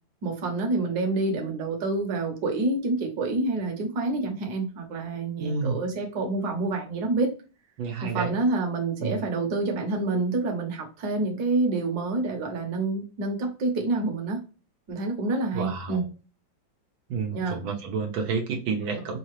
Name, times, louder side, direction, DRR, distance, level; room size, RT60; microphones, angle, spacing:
voice 1, 0.2-7.3 8.0-14.4 14.9-16.0 17.3-17.6, right 3 dB, 55° right, 1.5 m, -27 dB
voice 2, 5.4-5.8 7.8-8.3 9.0-9.2 15.5-16.1 17.1-19.2, right 5 dB, 80° right, 1.7 m, -30 dB
5.6 x 2.8 x 3.1 m
omnidirectional pair, 2.2 m